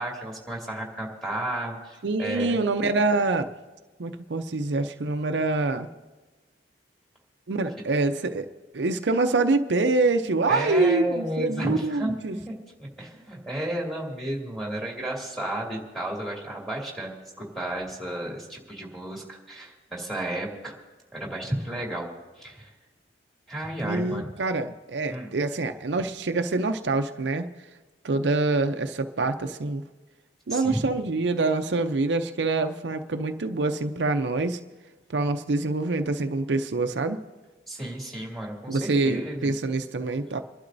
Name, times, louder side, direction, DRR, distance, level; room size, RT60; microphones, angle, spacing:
voice 1, 0.0-2.6 10.5-12.5 12.8-20.7 21.1-22.1 22.4-22.7 23.5-24.3 25.1-25.3 30.5-30.9 37.7-39.5, right 1 dB, ahead, -2 dB, 2.5 m, -32 dB
voice 2, 2.0-3.5 4.0-5.9 7.5-8.5 8.7-12.4 23.8-27.5 28.0-29.8 30.5-34.6 35.1-37.2 38.7-40.4, right 3 dB, 75° right, 7 dB, 0.6 m, -25 dB
29.0 x 11.5 x 2.7 m, 1.2 s
head